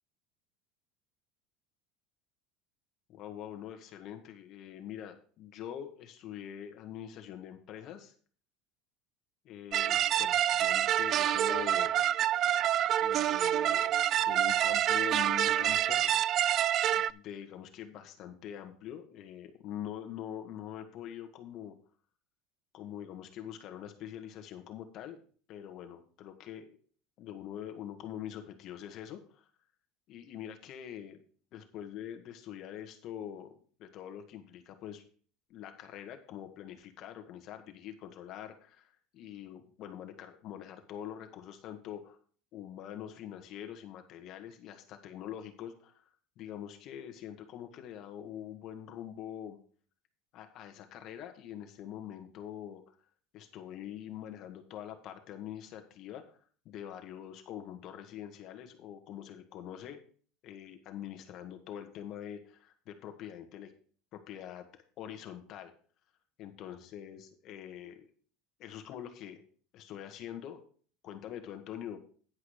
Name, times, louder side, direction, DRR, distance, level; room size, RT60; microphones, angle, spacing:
voice 1, 3.1-8.1 9.4-11.9 13.0-13.9 14.2-16.3 16.9-21.7 22.7-25.2 25.5-26.8 27.2-29.5 30.1-31.2 31.5-33.5 33.8-35.0 35.5-42.2 42.5-46.0 46.4-49.6 50.3-53.0 53.3-56.4 56.6-60.0 60.4-63.7 64.1-65.7 66.4-68.1 68.6-69.4 69.7-70.6 71.0-72.0, left 10 dB, 45° left, 6 dB, 1.3 m, -44 dB
sound 1, 9.7-17.1, right 11 dB, 40° right, 0.3 m, -27 dB
10.0 x 4.7 x 6.4 m, 0.43 s
supercardioid pair, 140°, 0 cm